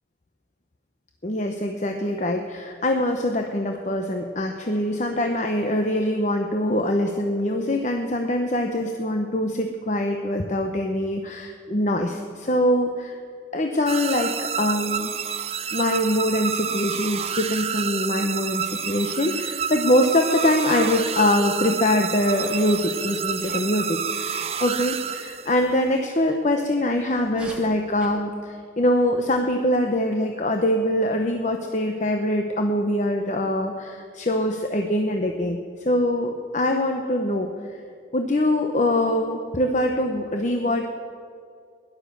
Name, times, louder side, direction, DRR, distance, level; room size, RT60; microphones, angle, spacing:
voice 1, 1.2-13.2 13.5-15.1 15.7-37.8 38.1-40.9, left 1 dB, 40° left, 4 dB, 0.8 m, -23 dB
sound 1, 13.9-25.7, right 8 dB, 35° right, 0.6 m, -29 dB
Sneeze, 22.6-22.8 23.4-23.7 26.2-26.4 27.2-28.2, right 1 dB, 5° right, 1.9 m, -42 dB
16.5 x 11.5 x 6.8 m, 2.3 s
head